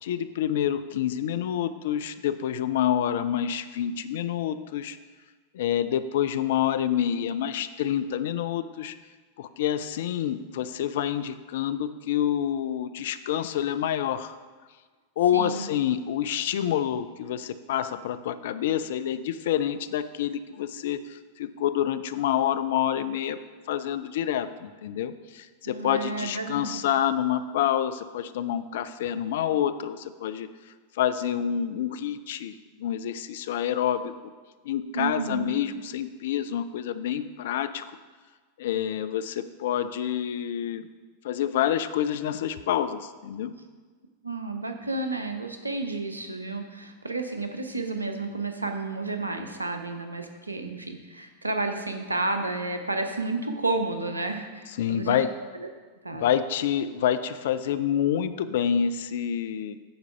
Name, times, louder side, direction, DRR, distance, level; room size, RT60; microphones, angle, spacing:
voice 1, 0.0-5.0 5.5-8.9 9.4-14.4 15.2-23.4 23.7-30.5 30.9-34.1 34.6-37.9 38.6-40.9 41.2-43.5 54.8-55.3 56.1-59.8, left 10 dB, 55° left, 12 dB, 0.4 m, -27 dB
voice 2, 15.3-15.7 25.7-26.8 34.9-35.6 44.2-55.3 55.6-55.7 56.0-56.3, right 3 dB, 80° right, 6 dB, 0.8 m, -31 dB
9.4 x 4.0 x 5.8 m, 1.4 s
figure-of-eight pair, 90°, 0 cm